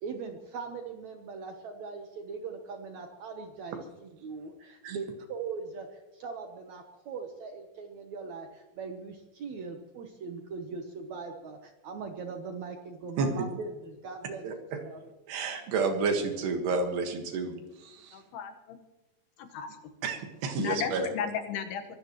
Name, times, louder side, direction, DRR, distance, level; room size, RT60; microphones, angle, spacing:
voice 1, 0.0-14.5 14.8-15.1, right 5 dB, 70° right, 4 dB, 1.8 m, -40 dB
voice 2, 14.4-14.8 15.3-18.2 20.0-21.1, right 4 dB, 90° right, 4 dB, 3.7 m, -30 dB
voice 3, 18.1-18.8 19.4-19.7 20.6-22.0, left 7 dB, 80° left, 7 dB, 3.3 m, -34 dB
23.5 x 16.0 x 3.1 m, 1.1 s
omnidirectional pair, 4.5 m